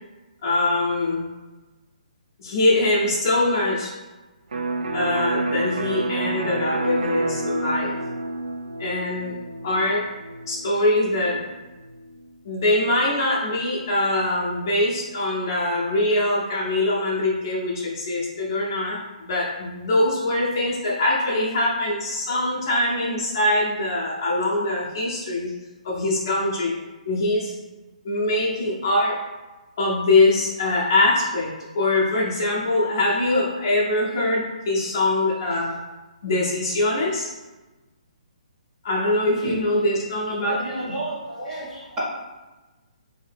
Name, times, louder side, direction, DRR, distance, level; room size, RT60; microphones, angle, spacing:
voice 1, 0.4-1.2 2.4-3.9 4.9-7.9 8.8-9.3 9.6-10.1 10.5-11.4 12.4-25.5 25.8-26.7 27.1-27.5 28.0-29.2 29.8-31.5 31.7-35.8 36.2-37.3 38.8-40.9, left 2 dB, 30° left, -5 dB, 0.6 m, -23 dB
Electric guitar, 4.5-12.2, right 2 dB, 70° right, 0.4 m, -29 dB
voice 2, 40.7-42.0, right 1 dB, 10° right, -9 dB, 0.7 m, -31 dB
3.7 x 2.7 x 3.4 m, 1.2 s
hypercardioid pair, 180°, 4 cm